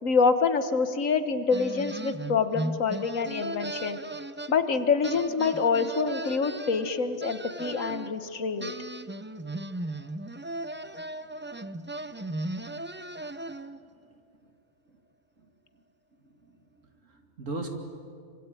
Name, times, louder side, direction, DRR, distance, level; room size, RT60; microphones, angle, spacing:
voice 1, 0.0-4.0 4.5-8.7, left 5 dB, 90° left, 10 dB, 1.7 m, -26 dB
sound 1, 1.5-4.8 5.0-8.1 8.6-13.9, right 1 dB, 15° right, 0.3 m, -37 dB
voice 2, 13.7-14.0 17.0-17.8, right 2 dB, 75° right, 4 dB, 2.9 m, -39 dB
25.5 x 25.0 x 9.1 m, 2.4 s
omnidirectional pair, 1.3 m